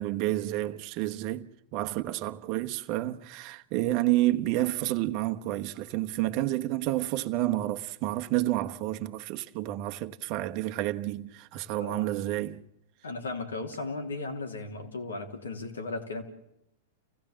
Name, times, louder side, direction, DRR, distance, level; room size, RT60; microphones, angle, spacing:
voice 1, 0.0-12.6, right 15 dB, 45° right, 1.1 m, -30 dB
voice 2, 13.0-16.2, left 3 dB, 90° left, 3.2 m, -36 dB
29.0 x 16.5 x 7.5 m
hypercardioid pair, 110°, 0 cm